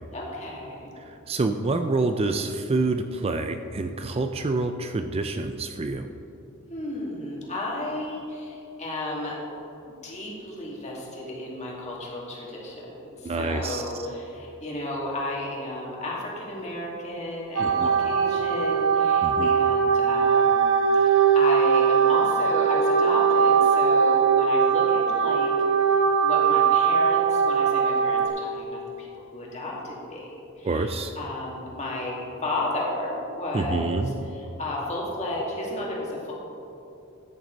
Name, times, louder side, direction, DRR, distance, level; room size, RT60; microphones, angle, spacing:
voice 1, 0.1-0.9 6.7-9.4 9.8-25.5 26.2-30.9 31.2-36.3, left 1 dB, 35° left, -3 dB, 2.5 m, -33 dB
voice 2, 1.3-6.1 13.2-13.8 17.6-18.0 19.2-19.5 30.6-31.1 33.5-34.2, right 3 dB, 30° right, 7 dB, 0.4 m, -27 dB
sound 1, 17.6-28.3, right 6 dB, 65° right, 1.2 m, -21 dB
14.0 x 9.5 x 4.0 m, 2.9 s
head